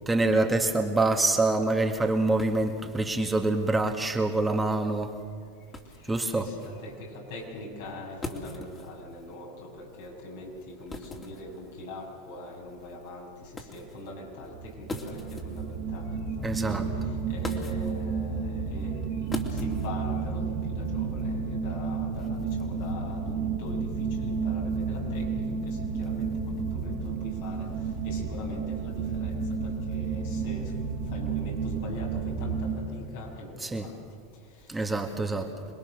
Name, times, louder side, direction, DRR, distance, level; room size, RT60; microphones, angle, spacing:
voice 1, 0.1-5.1 6.1-6.5 16.4-16.9 33.6-33.9 34.7-35.5, right 2 dB, 10° right, 3 dB, 1.9 m, -25 dB
sound 1, 2.4-20.6, left 2 dB, 20° left, 3.1 m, -44 dB
voice 2, 6.0-16.2 16.6-16.8 17.3-26.3 26.7-27.7 28.0-29.3 29.6-30.7 31.1-33.9 35.1-35.7, left 2 dB, 70° left, -1 dB, 6.7 m, -42 dB
sound 2, 14.5-32.7, right 5 dB, 50° right, 2.9 m, -31 dB
26.5 x 21.0 x 6.7 m, 2.1 s
hypercardioid pair, 95°, 0 cm